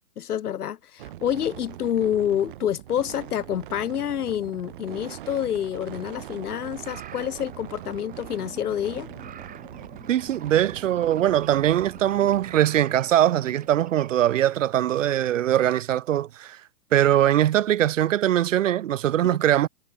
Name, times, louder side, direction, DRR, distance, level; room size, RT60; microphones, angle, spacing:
voice 1, 0.2-9.1, left 10 dB, 70° left, 1.5 m, -28 dB
sound 1, 1.0-12.5, right 14 dB, 35° right, 0.7 m, -42 dB
sound 2, 6.1-14.1, right 10 dB, 15° right, 6.4 m, -47 dB
sound 3, 8.3-13.8, left 5 dB, 5° left, 2.0 m, -50 dB
voice 2, 10.1-16.6 16.9-19.7, right 12 dB, 55° right, 1.0 m, -21 dB
hypercardioid pair, 140°, 47 cm